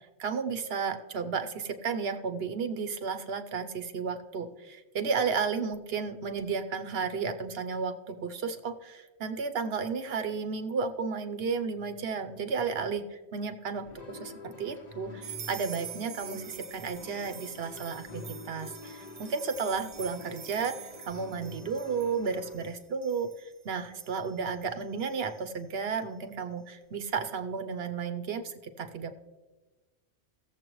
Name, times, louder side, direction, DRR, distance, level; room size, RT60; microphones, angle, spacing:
voice 1, 0.2-23.3 23.6-29.2, right 5 dB, 60° right, 8 dB, 0.9 m, -33 dB
sound 1, 13.8-22.7, left 3 dB, 40° left, 0.8 m, -47 dB
sound 2, 15.2-25.6, right 8 dB, 85° right, 1.1 m, -47 dB
17.0 x 7.3 x 3.1 m, 1.2 s
omnidirectional pair, 1.2 m